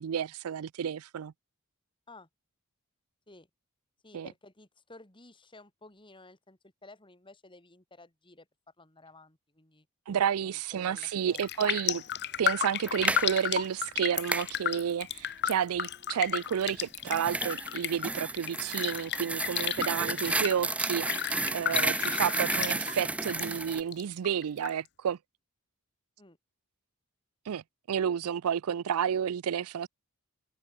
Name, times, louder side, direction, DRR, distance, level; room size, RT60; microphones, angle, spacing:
voice 1, 0.0-1.3 4.1-4.3 10.1-12.0 12.4-25.2 27.5-29.9, right 8 dB, 75° right, 0.4 m, -31 dB
voice 2, 4.0-8.5 8.8-9.9 10.4-11.5 26.2-26.4, left 2 dB, 20° left, 3.4 m, -54 dB
Raindrop, 10.9-11.1 11.4-23.4 23.7-24.7 25.1-25.2, left 10 dB, 50° left, 1.1 m, -33 dB
Wind instrument woodwind instrument, 11.6-17.7 18.2-20.9, right 2 dB, 35° right, 6.3 m, -65 dB
sound 1, 12.9-13.3 14.3-14.5 16.7-23.8, right 2 dB, 5° right, 0.3 m, -32 dB
head